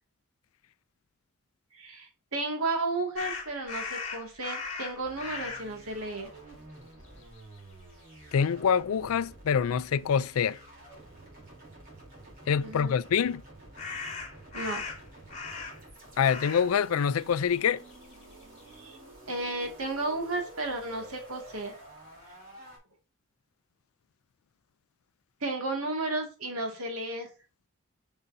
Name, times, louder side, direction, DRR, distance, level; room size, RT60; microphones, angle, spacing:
voice 1, 1.7-6.3 12.6-12.9 14.5-14.9 18.8-19.0 19.3-21.8 25.4-27.3, right 2 dB, 90° right, 2.0 m, -33 dB
sound 1, 3.2-5.7 6.5-6.7 7.0-7.9 13.8-15.9 16.2-16.7 17.0-18.6, left 4 dB, 35° left, 2.2 m, -38 dB
sound 2, 5.0-22.8, right 2 dB, 40° right, 3.2 m, -50 dB
voice 2, 8.3-10.6 12.5-13.4 16.2-17.8, left 7 dB, 80° left, 0.4 m, -25 dB
6.8 x 5.5 x 2.6 m
head